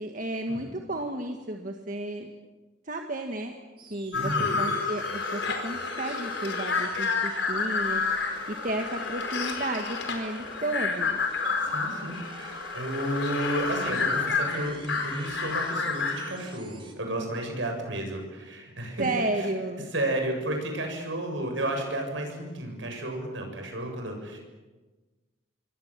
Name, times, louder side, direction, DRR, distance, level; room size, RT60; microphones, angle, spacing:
voice 1, 0.0-2.3 2.9-3.5 3.9-4.3 4.6-8.3 8.6-11.2 19.0-19.8, right 1 dB, 40° right, 3 dB, 1.7 m, -32 dB
sound 1, 3.8-16.9, right 3 dB, 25° right, 3.1 m, -48 dB
sound 2, 4.1-16.4, left 4 dB, 65° left, 4.5 m, -30 dB
voice 2, 4.1-4.6 11.6-19.1 19.3-19.5 19.9-24.4, right 1 dB, 70° right, 3 dB, 7.3 m, -32 dB
28.0 x 23.5 x 7.6 m, 1.2 s
head